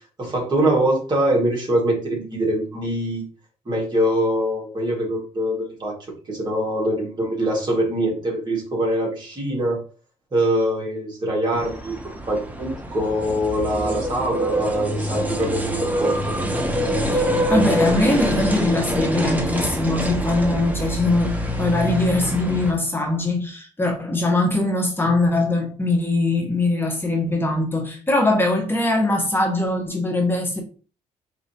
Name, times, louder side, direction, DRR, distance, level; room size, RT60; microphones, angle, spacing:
voice 1, 0.2-3.3 3.7-6.0 6.3-9.8 10.3-16.2, right 1 dB, 35° right, 1.9 m, -23 dB
sound 1, 11.5-22.7, right 1 dB, 10° right, 0.8 m, -25 dB
voice 2, 17.1-30.6, left 2 dB, 15° left, 1.2 m, -22 dB
4.9 x 2.9 x 2.8 m
cardioid pair, 85°, 13 cm